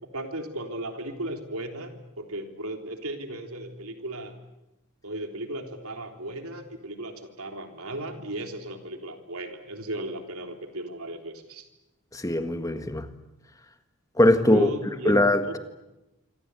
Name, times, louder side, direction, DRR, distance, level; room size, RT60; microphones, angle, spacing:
voice 1, 0.0-4.4 5.0-11.7 14.5-15.1 15.4-15.6, right 1 dB, 80° right, 3.6 m, -35 dB
voice 2, 12.1-13.1 14.2-14.7 15.0-15.4, left 1 dB, 15° left, 1.6 m, -21 dB
26.0 x 26.0 x 8.2 m
head